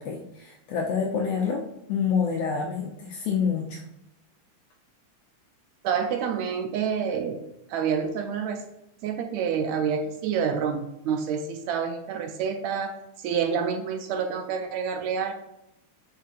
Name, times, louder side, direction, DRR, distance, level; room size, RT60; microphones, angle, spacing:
voice 1, 0.0-3.8, left 6 dB, 75° left, 1 dB, 1.5 m, -27 dB
voice 2, 5.8-7.4 7.7-8.6 9.0-15.3, right 7 dB, 80° right, 6 dB, 1.7 m, -28 dB
6.4 x 6.4 x 2.5 m, 0.84 s
omnidirectional pair, 3.5 m